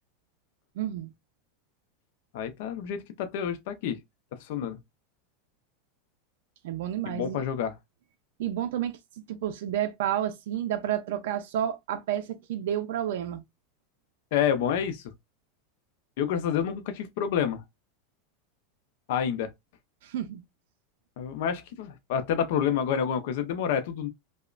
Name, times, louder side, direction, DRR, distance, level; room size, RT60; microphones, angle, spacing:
voice 1, 0.8-1.1 6.6-7.4 8.4-9.0 9.3-13.4 20.0-20.4, right 11 dB, 75° right, 0.4 m, -30 dB
voice 2, 2.3-4.0 4.4-4.8 7.1-7.7 14.3-15.0 16.2-17.6 19.1-19.5 21.2-24.1, left 8 dB, 65° left, 0.5 m, -28 dB
2.9 x 2.0 x 2.4 m
supercardioid pair, 145°, 0 cm